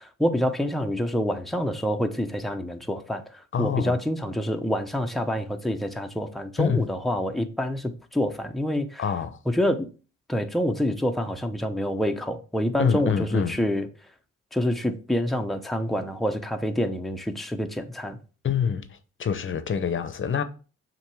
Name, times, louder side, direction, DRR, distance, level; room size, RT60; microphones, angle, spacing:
voice 1, 0.0-9.1 9.5-9.9 10.3-13.9 14.5-18.2, equal, ahead, 0.8 m, -27 dB
voice 2, 3.5-4.0 6.6-6.9 9.0-9.4 12.8-13.6 18.4-20.4, left 7 dB, 40° left, 0.9 m, -26 dB
7.3 x 3.0 x 4.6 m
cardioid pair, 90°, 30 cm